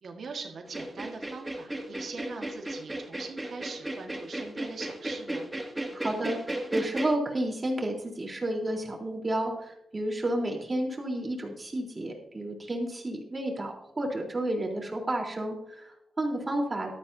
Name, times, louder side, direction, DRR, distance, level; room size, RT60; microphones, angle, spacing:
voice 1, 0.0-5.5, right 4 dB, 65° right, 3 dB, 1.7 m, -42 dB
sound 1, 0.7-7.1, right 1 dB, 15° right, 2.2 m, -35 dB
voice 2, 5.9-16.9, right 1 dB, 30° right, 0 dB, 3.8 m, -31 dB
14.5 x 13.0 x 2.8 m, 0.81 s
cardioid pair, 55°, 0 cm